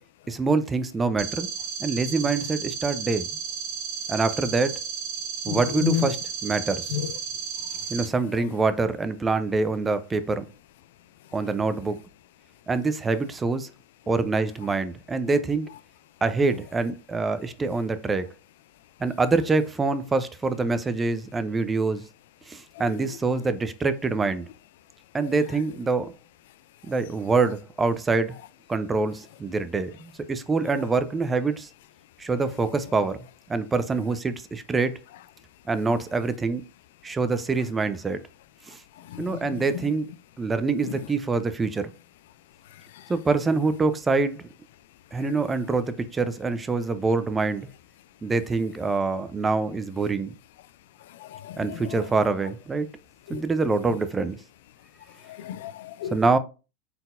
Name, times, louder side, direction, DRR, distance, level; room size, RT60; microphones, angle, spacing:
voice 1, 0.3-1.5 1.8-3.3 4.1-4.8 5.4-6.2 6.4-6.9 7.9-10.4 11.3-12.0 12.7-13.7 14.1-15.7 16.2-18.3 19.0-22.0 22.5-24.5 25.1-26.1 26.9-28.4 28.7-31.7 32.2-33.2 33.5-35.0 35.7-36.6 37.0-38.2 38.7-38.8 39.2-40.1 40.4-41.9 43.1-44.4 45.1-47.7 48.2-50.3 51.6-52.9 53.3-54.4 56.1-56.4, right 3 dB, 15° right, 0.5 m, -25 dB
sound 1, 1.2-8.0, right 7 dB, 50° right, 1.6 m, -33 dB
voice 2, 5.5-6.1 6.9-7.1 39.1-39.6 51.2-52.0 53.3-53.4 55.3-56.1, left 12 dB, 75° left, 0.3 m, -31 dB
4.1 x 3.9 x 2.5 m
hypercardioid pair, 110°, 0 cm